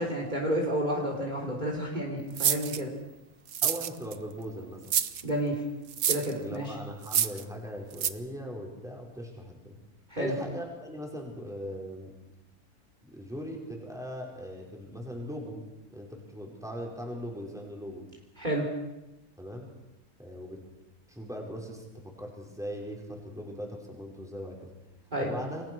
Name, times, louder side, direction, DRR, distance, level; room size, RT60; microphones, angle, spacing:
voice 1, 0.0-2.9 5.2-5.6 6.1-6.7 10.1-10.3 18.4-18.7 25.1-25.3, right 1 dB, 30° right, 0 dB, 4.1 m, -30 dB
sound 1, 2.4-2.8 3.5-4.2 4.9-5.2 5.9-6.3 7.0-7.4 8.0-8.1, right 9 dB, 70° right, 1.4 m, -27 dB
voice 2, 3.6-4.8 6.4-9.8 10.2-12.1 13.0-15.6 15.9-18.0 19.4-19.7 20.2-20.6 21.1-24.7 25.2-25.6, equal, ahead, 0 dB, 5.3 m, -39 dB
29.0 x 21.5 x 6.4 m, 0.97 s
omnidirectional pair, 1.5 m